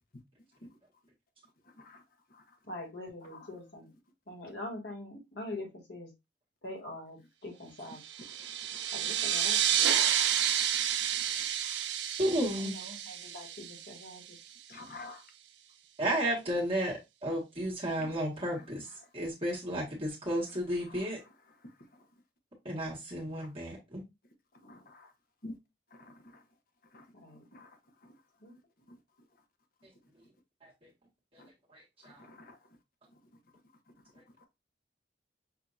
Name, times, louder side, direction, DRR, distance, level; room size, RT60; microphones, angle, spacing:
voice 1, 2.7-3.9 4.3-6.1 6.6-8.0 8.9-9.8 12.6-14.2 27.2-27.4 28.4-28.6, left 1 dB, 70° left, 2.2 m, -43 dB
sound 1, 8.0-14.3, right 10 dB, 75° right, 0.6 m, -30 dB
voice 2, 12.2-12.7 16.0-16.9 17.2-18.9 19.1-21.2 22.7-24.0 31.7-32.2, equal, 30° right, 1.6 m, -32 dB
voice 3, 14.7-15.2 18.0-18.1 20.9-21.0 24.6-25.1 25.4-25.5 26.1-26.2 26.9-27.0 27.5-27.7 31.4-31.5 32.2-32.5, left 2 dB, 55° left, 1.1 m, -47 dB
6.7 x 2.8 x 2.6 m
head